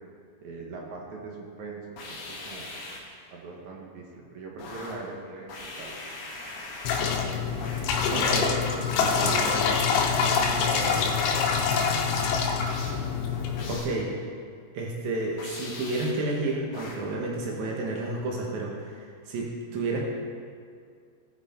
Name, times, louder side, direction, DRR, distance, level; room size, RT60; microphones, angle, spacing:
voice 1, 0.4-1.8 2.1-2.7 3.3-5.9 7.2-7.5 8.1-8.6 9.0-9.8 10.1-11.1, right 3 dB, 60° right, -2 dB, 2.1 m, -39 dB
sound 1, 2.0-3.2 4.6-5.1 5.5-7.2 7.6-8.0 9.0-9.6 11.7-12.1 12.7-13.1 13.6-14.0 15.4-16.3 16.7-17.1, left 2 dB, 55° left, 2.0 m, -41 dB
sound 2, 6.8-13.8, left 5 dB, 85° left, 3.0 m, -25 dB
voice 2, 8.1-8.5 9.0-9.7 13.7-14.1 14.7-20.0, right 2 dB, 80° right, -2 dB, 1.6 m, -31 dB
17.5 x 6.1 x 4.4 m, 2.2 s
omnidirectional pair, 5.2 m